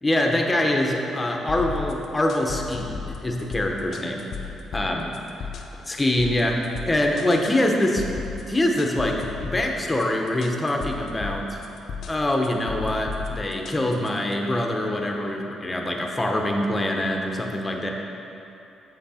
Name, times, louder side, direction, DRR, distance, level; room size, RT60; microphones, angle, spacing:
voice 1, 0.0-5.1 5.8-8.0 8.5-11.6 12.1-17.9, left 1 dB, 20° left, 1 dB, 0.9 m, -24 dB
sound 1, 1.5-14.3, left 6 dB, 70° left, 0.6 m, -35 dB
7.3 x 5.9 x 4.3 m, 3.0 s
cardioid pair, 90°, 0 cm